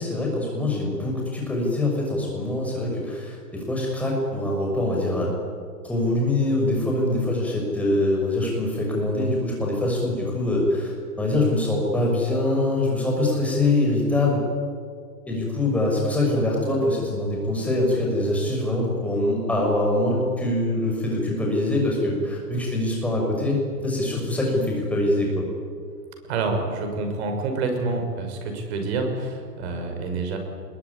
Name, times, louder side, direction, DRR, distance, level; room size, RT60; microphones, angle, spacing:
voice 1, 0.0-5.3 5.8-10.9 11.2-14.4 15.3-25.5, left 1 dB, 5° left, -2 dB, 6.4 m, -24 dB
voice 2, 26.3-30.4, right 3 dB, 40° right, 4 dB, 6.1 m, -27 dB
23.0 x 22.0 x 9.9 m, 2.1 s
hypercardioid pair, 150°, 48 cm